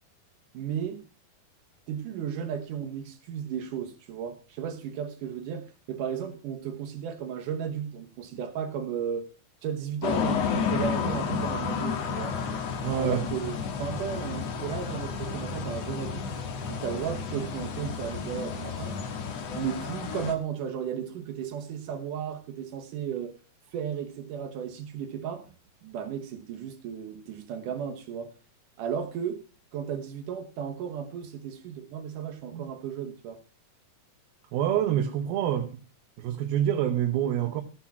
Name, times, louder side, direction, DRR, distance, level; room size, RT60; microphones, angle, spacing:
voice 1, 0.5-1.0 1.9-9.3 9.6-12.4 13.0-16.3 16.7-19.0 19.5-23.4 23.7-25.5 25.8-28.3 28.8-29.5 29.7-33.4, right 8 dB, 70° right, 2.5 m, -34 dB
sound 1, 10.0-20.3, left 6 dB, 55° left, 2.1 m, -31 dB
voice 2, 12.8-13.2 34.5-35.8 36.2-37.6, right 10 dB, 90° right, 2.9 m, -26 dB
15.0 x 6.0 x 5.9 m
omnidirectional pair, 4.2 m